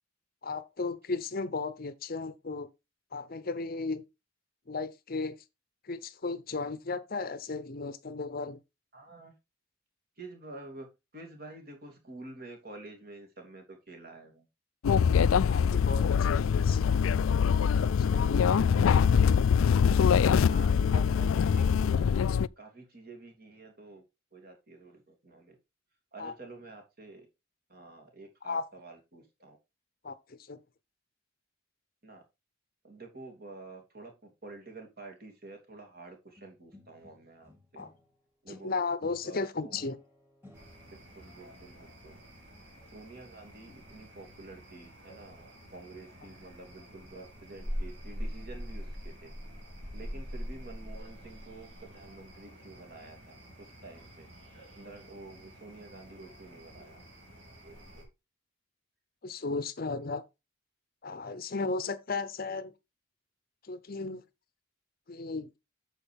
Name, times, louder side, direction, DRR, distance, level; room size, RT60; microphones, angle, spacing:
voice 1, 0.4-2.7 3.1-4.0 4.7-5.4 5.9-8.6 15.5-16.8 17.8-18.5 26.2-26.3 28.4-28.7 30.0-30.6 37.8-37.9 38.6-40.0 59.2-60.2 61.0-62.7 63.7-64.2 65.1-65.6, left 3 dB, 45° left, 0.7 m, -35 dB
voice 2, 8.9-9.3 10.2-10.9 11.1-14.5 18.6-19.3 20.5-22.1 22.6-24.0 24.3-25.6 26.1-27.3 27.7-29.6 32.0-32.2 32.8-37.8 38.4-38.7 39.2-39.9 40.9-42.2 42.9-49.3 49.9-54.3 54.7-57.0, right 2 dB, 50° right, 2.8 m, -49 dB
sound 1, 14.8-22.5, left 7 dB, 85° left, 0.4 m, -24 dB
sound 2, 36.4-38.1 38.5-41.1, left 2 dB, 10° right, 2.3 m, -56 dB
sound 3, 40.5-58.0, equal, 65° right, 3.5 m, -44 dB
9.0 x 6.5 x 3.4 m
head